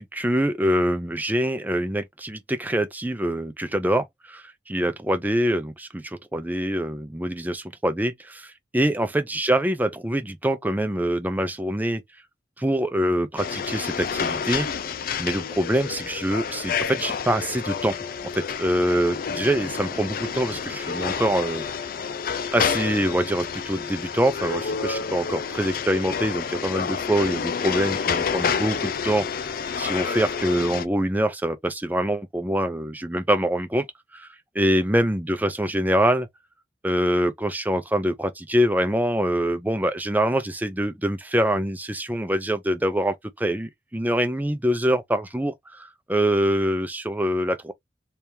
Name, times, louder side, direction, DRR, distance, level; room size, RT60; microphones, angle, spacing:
voice 1, 0.0-12.0 12.6-14.7 15.2-18.0 18.3-21.7 22.5-29.5 29.8-33.9 34.1-34.3 34.5-36.3 36.8-47.7, right 1 dB, 10° right, 0.6 m, -24 dB
sound 1, 13.4-30.9, left 6 dB, 55° left, 0.4 m, -29 dB
3.4 x 2.9 x 3.3 m
head